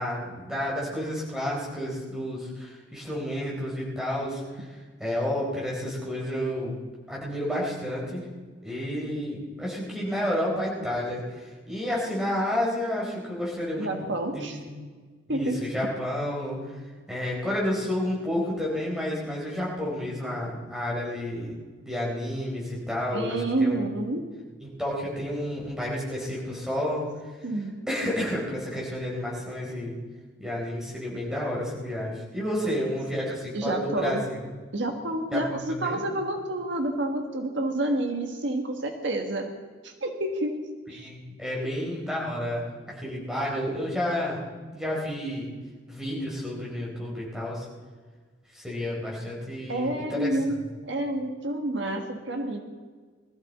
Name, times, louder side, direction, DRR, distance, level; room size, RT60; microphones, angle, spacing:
voice 1, 0.0-4.7 5.0-6.7 7.1-8.2 8.6-11.2 11.7-14.1 14.3-14.7 15.3-16.6 17.1-21.5 21.8-23.7 24.6-27.1 27.9-30.0 30.4-34.2 35.3-36.0 40.9-44.4 44.7-45.5 45.9-47.7 48.5-50.3, left 1 dB, 5° right, -4 dB, 4.1 m, -30 dB
voice 2, 13.8-14.6 15.3-15.6 23.1-24.3 27.4-27.7 32.7-33.0 33.5-34.2 34.7-39.6 39.8-41.1 41.5-41.7 49.7-52.6, right 1 dB, 70° right, 4 dB, 1.5 m, -29 dB
20.5 x 14.0 x 4.2 m, 1.5 s
head